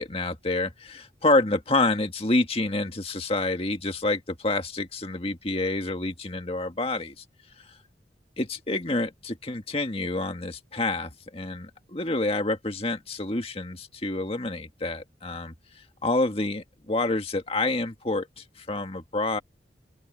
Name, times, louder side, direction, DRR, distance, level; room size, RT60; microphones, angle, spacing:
voice 1, 0.0-7.1 8.4-15.5 16.0-19.4, left 2 dB, 35° left, 1.8 m, -28 dB
open air
head